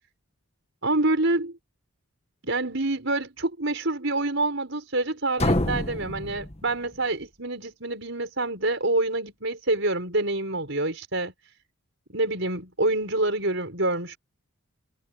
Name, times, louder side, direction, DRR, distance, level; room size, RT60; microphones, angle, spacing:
voice 1, 0.8-1.6 2.4-11.3 12.1-14.2, right 2 dB, 55° right, 6.5 m, -27 dB
sound 1, 5.4-7.2, left 1 dB, 30° left, 1.6 m, -28 dB
head